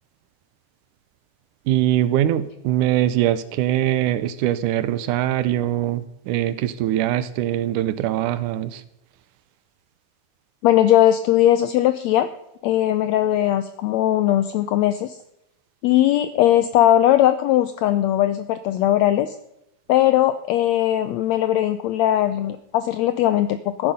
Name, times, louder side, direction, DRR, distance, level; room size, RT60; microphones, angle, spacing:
voice 1, 1.7-8.8, right 12 dB, 80° right, 14 dB, 2.1 m, -22 dB
voice 2, 10.6-12.3 12.6-15.2 15.8-19.3 19.9-23.9, left 12 dB, 90° left, 12 dB, 1.5 m, -19 dB
14.0 x 10.0 x 5.5 m, 0.84 s
omnidirectional pair, 3.7 m